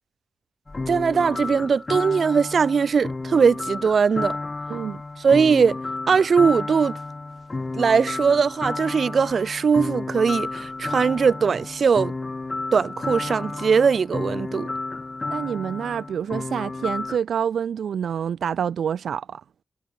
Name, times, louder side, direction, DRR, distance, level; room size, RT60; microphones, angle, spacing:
sound 1, 0.7-17.2, left 3 dB, 40° left, 2.2 m, -32 dB
voice 1, 0.9-4.4 5.2-5.8 6.1-6.9 7.7-12.1 12.7-14.7, right 5 dB, 70° right, 1.9 m, -20 dB
voice 2, 4.7-5.0 15.3-19.4, right 8 dB, 90° right, 1.4 m, -27 dB
cardioid pair, 50°, 0 cm